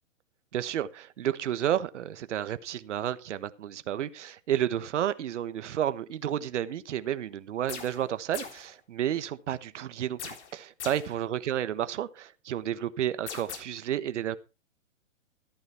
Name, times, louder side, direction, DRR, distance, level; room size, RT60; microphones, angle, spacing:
voice 1, 0.5-14.4, right 11 dB, 65° right, 1.3 m, -31 dB
sound 1, 7.7-8.1 8.3-8.7 10.2-11.2 13.3-13.6, left 7 dB, 60° left, 3.6 m, -40 dB
14.5 x 9.2 x 4.4 m
hypercardioid pair, 145°, 39 cm